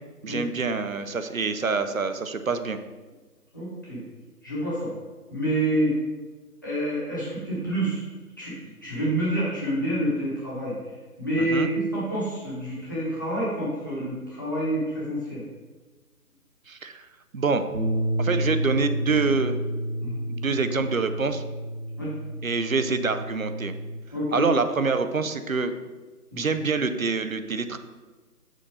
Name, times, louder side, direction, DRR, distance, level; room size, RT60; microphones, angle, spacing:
voice 1, 0.2-2.8 11.4-11.7 16.7-17.0 17.3-17.6 18.2-19.6 20.3-21.4 22.4-23.7 24.3-25.7 26.3-27.8, right 4 dB, 60° right, 9 dB, 0.6 m, -26 dB
voice 2, 3.5-4.0 4.4-4.9 5.3-5.9 6.6-8.0 8.4-10.7 11.2-11.7 11.9-15.4 20.0-20.2 22.0-22.1 24.1-24.4 26.3-26.4, right 1 dB, 15° left, -9 dB, 1.0 m, -28 dB
Bass guitar, 17.7-24.0, right 1 dB, 40° right, 1.1 m, -30 dB
6.4 x 4.0 x 5.0 m, 1.3 s
figure-of-eight pair, 155°, 48 cm